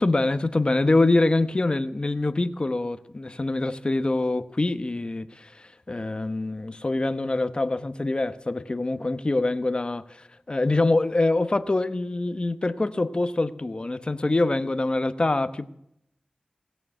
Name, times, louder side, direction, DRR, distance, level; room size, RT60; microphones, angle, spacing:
voice 1, 0.0-15.7, left 2 dB, 35° left, 0.9 m, -25 dB
17.5 x 6.8 x 10.0 m
wide cardioid pair, 75°, 3 cm